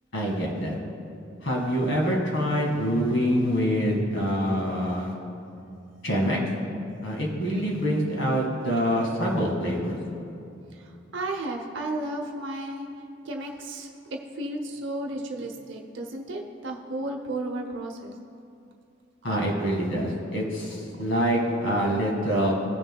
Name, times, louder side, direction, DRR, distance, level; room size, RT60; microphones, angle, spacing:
voice 1, 0.1-0.8 1.4-5.1 6.0-6.4 7.0-10.0 19.2-22.5, equal, 65° left, -2 dB, 1.9 m, -25 dB
voice 2, 10.7-12.9 13.2-18.1, right 1 dB, 65° right, 2 dB, 0.7 m, -33 dB
17.5 x 6.5 x 2.3 m, 2.6 s
head